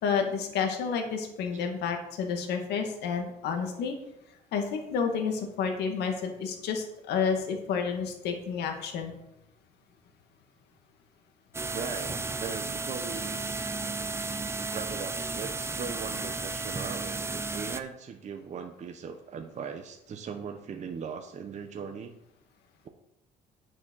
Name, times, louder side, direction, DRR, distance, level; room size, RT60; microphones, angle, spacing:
voice 1, 0.0-3.9 4.5-9.1, left 6 dB, 80° left, 4 dB, 1.9 m, -30 dB
sound 1, 11.5-17.8, right 3 dB, 15° right, 0.7 m, -33 dB
voice 2, 11.7-13.6 14.7-22.1, right 6 dB, 45° right, 5 dB, 1.0 m, -39 dB
9.2 x 6.3 x 6.3 m, 0.84 s
cardioid pair, 110°, 17 cm